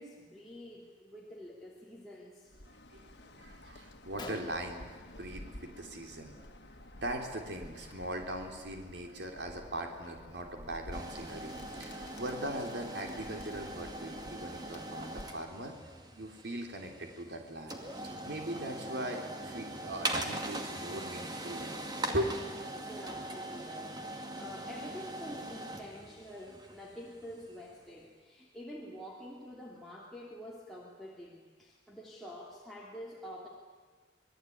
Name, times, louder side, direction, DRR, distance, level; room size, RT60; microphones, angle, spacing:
voice 1, 0.0-2.5 22.7-33.5, equal, ahead, -5 dB, 3.1 m, -47 dB
Bird, 2.4-15.6, left 1 dB, 70° left, 1.9 m, -51 dB
voice 2, 2.7-4.8 5.2-6.7 6.9-15.8 16.2-21.8 22.1-22.4, right 1 dB, 75° right, 3 dB, 3.5 m, -40 dB
Gunshot gunfire, 4.2-5.8 6.1-6.5 6.7-7.0 7.7-7.9 8.5-8.6 9.0-10.6, left 2 dB, 25° left, 2.4 m, -50 dB
sound 1, 10.9-27.8, right 1 dB, 20° right, 2.3 m, -41 dB
26.5 x 20.0 x 9.5 m, 1.5 s
head